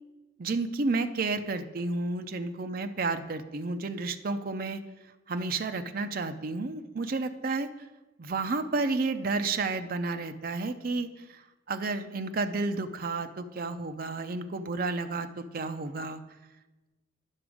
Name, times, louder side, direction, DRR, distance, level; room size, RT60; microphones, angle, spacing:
voice 1, 0.4-4.8 5.3-7.7 8.2-11.4 11.7-16.2, right 3 dB, 50° right, 8 dB, 0.5 m, -31 dB
9.7 x 6.0 x 4.9 m, 1.1 s
head